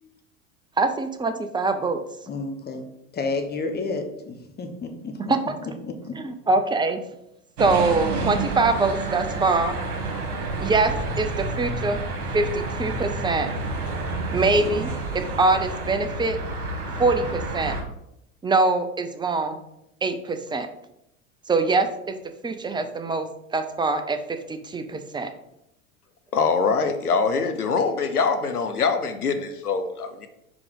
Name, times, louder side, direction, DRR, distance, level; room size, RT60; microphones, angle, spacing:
voice 1, 0.8-2.0 5.3-5.4 6.2-7.0 7.6-9.7 10.6-12.0 12.3-13.5 14.3-16.4 17.0-17.8 18.4-19.6 20.0-20.7 21.5-22.2 22.4-25.3, right 3 dB, 10° right, 8 dB, 0.6 m, -23 dB
voice 2, 2.3-2.9 3.1-5.3 5.6-6.2, left 3 dB, 20° left, 4 dB, 1.2 m, -31 dB
sound 1, 7.6-17.8, right 3 dB, 75° right, 1.4 m, -29 dB
voice 3, 26.3-30.3, left 5 dB, 85° left, 8 dB, 0.8 m, -23 dB
4.9 x 4.9 x 5.3 m, 0.82 s
figure-of-eight pair, 80°, 44 cm